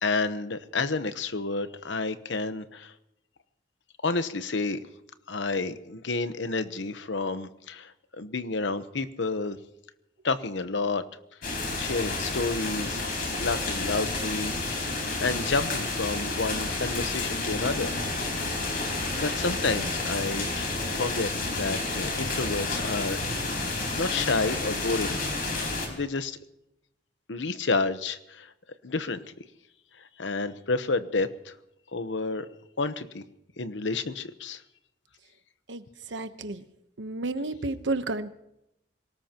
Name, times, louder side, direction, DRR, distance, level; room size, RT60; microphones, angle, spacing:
voice 1, 0.0-2.9 4.0-4.8 5.3-9.6 10.2-11.0 11.5-13.0 13.4-14.5 15.2-17.9 19.1-23.4 23.9-25.2 25.9-26.4 27.3-28.5 28.8-29.3 30.2-31.5 31.9-32.5 32.8-33.2 33.6-34.6, left 3 dB, 85° left, 12 dB, 1.0 m, -30 dB
sound 1, 11.4-25.9, left 3 dB, 50° left, 4.7 m, -30 dB
voice 2, 36.1-36.6 37.0-38.3, right 2 dB, 80° right, 10 dB, 1.0 m, -31 dB
26.0 x 18.5 x 3.0 m, 0.83 s
head